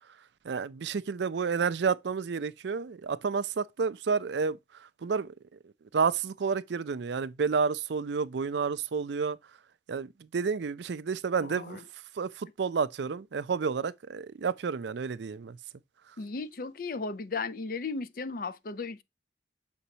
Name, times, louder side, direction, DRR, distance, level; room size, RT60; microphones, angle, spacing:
voice 1, 0.4-9.4 9.9-11.8 12.2-15.6, right 5 dB, 75° right, 0.4 m, -30 dB
voice 2, 11.5-11.8 16.2-19.0, left 4 dB, 50° left, 0.5 m, -35 dB
6.8 x 5.2 x 2.8 m
head